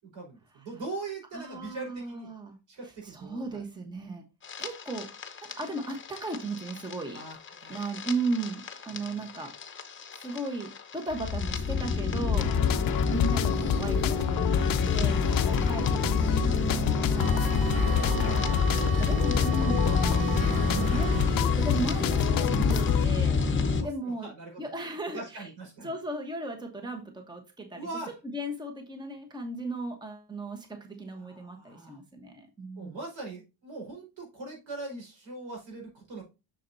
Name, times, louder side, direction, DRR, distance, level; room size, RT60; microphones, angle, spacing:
voice 1, 0.0-2.3 2.7-3.6 7.1-7.8 8.9-9.2 12.3-12.8 15.2-15.5 16.6-17.3 23.8-24.7 25.1-25.9 27.8-28.1 30.9-32.0 32.8-36.2, right 3 dB, 80° right, 1 dB, 4.8 m, -42 dB
voice 2, 1.3-2.6 2.8-4.2 4.6-5.1 5.4-7.2 7.7-9.5 10.2-12.5 13.1-17.4 17.8-18.6 19.0-19.9 20.7-23.4 23.8-24.3 24.6-25.5 25.8-27.9 28.3-33.0, right 2 dB, 10° right, 4 dB, 1.1 m, -36 dB
sound 1, 4.4-23.8, left 5 dB, 25° left, 0.9 m, -27 dB
sound 2, 12.4-23.0, left 10 dB, 50° left, 0.5 m, -31 dB
sound 3, 17.1-21.3, right 12 dB, 55° right, 0.7 m, -38 dB
7.5 x 6.6 x 2.7 m, 0.28 s
cardioid pair, 150°, 44 cm